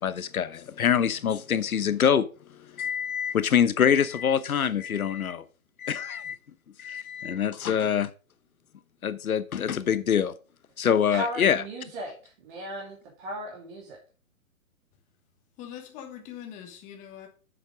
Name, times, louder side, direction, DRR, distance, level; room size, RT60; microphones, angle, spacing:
voice 1, 0.0-5.4 5.8-6.4 6.8-8.1 9.0-10.3 10.8-11.6, left 8 dB, 80° left, 1.0 m, -25 dB
voice 2, 11.1-14.0, equal, 35° right, 2.7 m, -36 dB
voice 3, 15.6-17.3, left 9 dB, 20° left, 1.3 m, -42 dB
7.3 x 6.8 x 4.8 m
hypercardioid pair, 140°, 42 cm